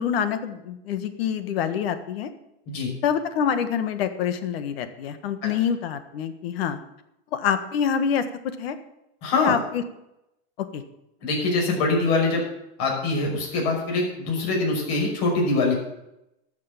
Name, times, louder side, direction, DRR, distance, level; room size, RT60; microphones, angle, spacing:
voice 1, 0.0-2.3 3.0-6.8 7.3-8.2 8.6-8.8 9.4-9.8 10.6-10.8, left 8 dB, 65° left, 11 dB, 1.5 m, -26 dB
voice 2, 9.2-9.5 11.2-12.4 12.8-15.7, left 3 dB, 45° left, 0 dB, 5.8 m, -23 dB
12.5 x 6.7 x 9.0 m, 0.86 s
supercardioid pair, 145°, 32 cm